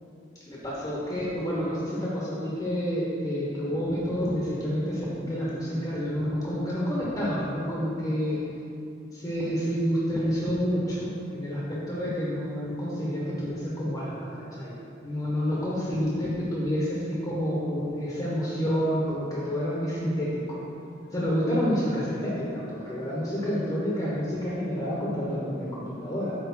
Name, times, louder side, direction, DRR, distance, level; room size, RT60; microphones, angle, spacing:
voice 1, 0.4-8.4 9.1-14.7 15.0-20.6 21.1-26.3, equal, 20° left, -7 dB, 1.3 m, -29 dB
8.8 x 3.5 x 5.7 m, 2.6 s
head